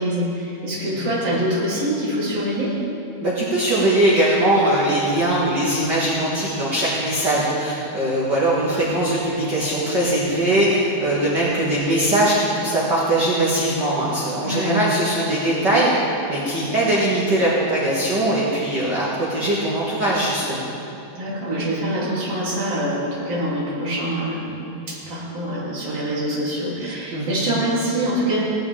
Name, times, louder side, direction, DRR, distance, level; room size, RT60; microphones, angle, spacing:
voice 1, 0.0-2.8 14.4-14.9 21.1-28.4, right 1 dB, 40° right, -7 dB, 3.5 m, -25 dB
voice 2, 3.2-15.9 16.3-20.7 27.1-27.3, right 1 dB, 90° right, -7 dB, 0.9 m, -21 dB
17.0 x 13.0 x 3.4 m, 2.8 s
omnidirectional pair, 4.7 m